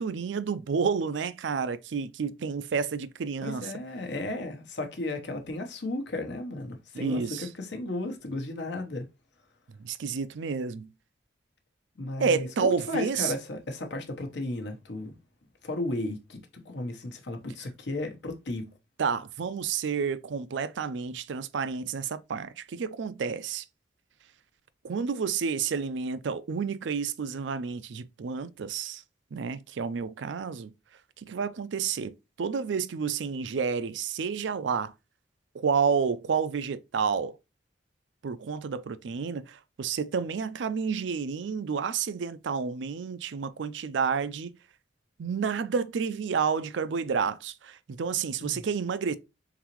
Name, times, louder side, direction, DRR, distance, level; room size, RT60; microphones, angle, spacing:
voice 1, 0.0-3.7 6.9-7.5 9.8-10.9 12.2-13.3 19.0-23.6 24.8-29.0 29.3-30.7 31.2-34.9 35.5-37.4 38.2-44.5 45.2-49.2, right 6 dB, 75° right, 0.4 m, -30 dB
voice 2, 3.4-9.1 12.0-15.1 15.6-18.7 48.4-48.6, left 2 dB, 70° left, 0.9 m, -34 dB
3.9 x 3.9 x 3.0 m
head